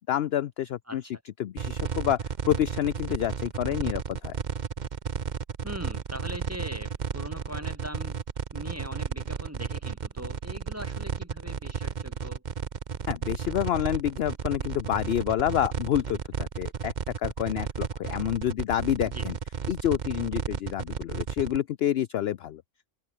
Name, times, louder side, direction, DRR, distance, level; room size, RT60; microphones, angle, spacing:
voice 1, 0.1-1.0 1.4-2.2 2.5-4.3 13.1-16.9 17.2-19.3 19.7-22.6, left 11 dB, 60° left, 0.7 m, -28 dB
voice 2, 0.9-1.2 5.6-8.2 8.5-12.4 19.0-19.3, equal, 10° right, 5.7 m, -41 dB
sound 1, 1.6-21.6, right 6 dB, 40° right, 0.9 m, -33 dB
omnidirectional pair, 1.4 m